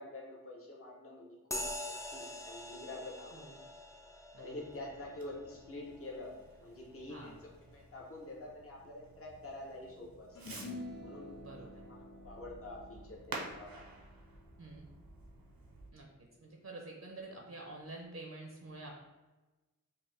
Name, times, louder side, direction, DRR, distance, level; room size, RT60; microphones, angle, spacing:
voice 1, 0.0-1.6 2.1-3.5 4.4-10.4 11.0-11.3 11.9-13.9, left 2 dB, 40° left, -2 dB, 0.8 m, -47 dB
sound 1, 1.5-9.4, left 1 dB, 10° left, 0.4 m, -46 dB
Fireworks, 4.5-15.9, right 3 dB, 80° right, 0.8 m, -51 dB
sound 2, 10.3-16.9, left 2 dB, 75° left, 1.1 m, -50 dB
voice 2, 11.4-11.9 14.6-14.9 15.9-19.0, right 2 dB, 50° right, 0 dB, 0.6 m, -48 dB
5.4 x 2.1 x 3.2 m, 1.1 s
wide cardioid pair, 65°, 34 cm